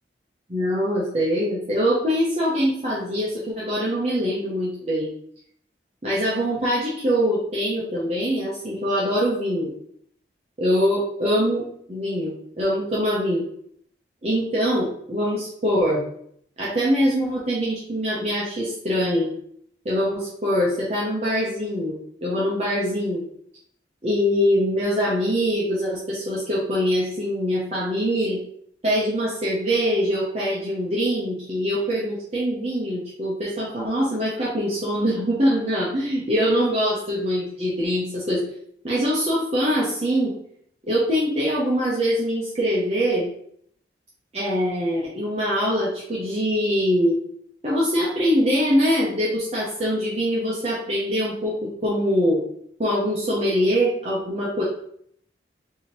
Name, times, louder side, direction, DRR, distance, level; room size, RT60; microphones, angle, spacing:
voice 1, 0.5-5.1 6.0-9.7 10.6-13.4 14.2-16.0 16.6-19.3 19.8-23.2 24.0-28.4 28.8-38.4 38.8-40.3 40.9-43.3 44.3-47.2 47.6-52.4 52.8-54.6, equal, 35° right, -7 dB, 0.8 m, -23 dB
3.5 x 2.8 x 4.3 m, 0.68 s
head